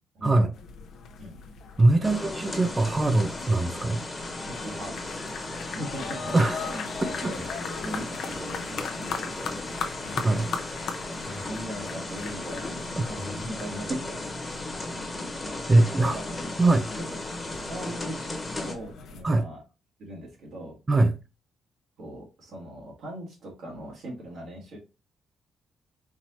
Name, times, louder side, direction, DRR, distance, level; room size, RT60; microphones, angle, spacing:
voice 1, 0.2-0.5 1.8-4.0 6.3-6.7 7.2-7.3 10.2-10.5 13.0-13.1 15.7-16.2 16.6-16.9 19.2-19.5 20.9-21.1, right 2 dB, 25° right, 0.6 m, -22 dB
sound 1, 0.5-19.2, left 6 dB, 70° left, 0.7 m, -39 dB
sound 2, 2.0-18.7, left 2 dB, 15° left, 1.2 m, -36 dB
voice 2, 2.0-2.3 4.4-5.4 5.7-7.3 7.7-9.6 10.1-10.4 11.2-12.8 13.1-14.2 16.0-16.4 17.1-18.2 18.6-19.6 20.0-20.8 22.0-24.8, right 1 dB, 75° right, 1.8 m, -40 dB
4.6 x 2.8 x 3.0 m
cardioid pair, 90°, 0 cm